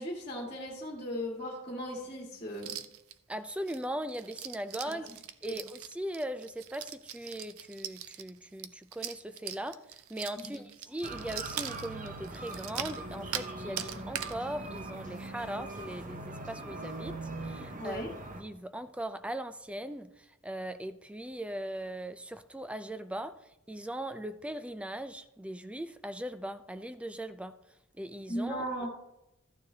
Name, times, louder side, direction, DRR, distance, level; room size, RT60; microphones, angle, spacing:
voice 1, 0.0-2.8 4.9-5.0 5.5-5.6 10.4-10.6 13.6-14.1 17.8-18.1 28.3-28.9, equal, 30° left, 1.9 m, -37 dB
sound 1, 2.5-3.1 3.5-13.5 13.8-14.4 14.8-14.9 15.2-15.5 15.8-15.9 16.4-16.5, right 10 dB, 90° right, 0.6 m, -41 dB
voice 2, 3.3-5.1 5.4-9.8 10.1-18.0 18.3-23.4 23.7-27.6 28.0-28.7, right 1 dB, 5° right, 0.4 m, -39 dB
sound 2, 11.0-18.4, right 2 dB, 40° right, 1.1 m, -41 dB
13.5 x 9.5 x 2.8 m
head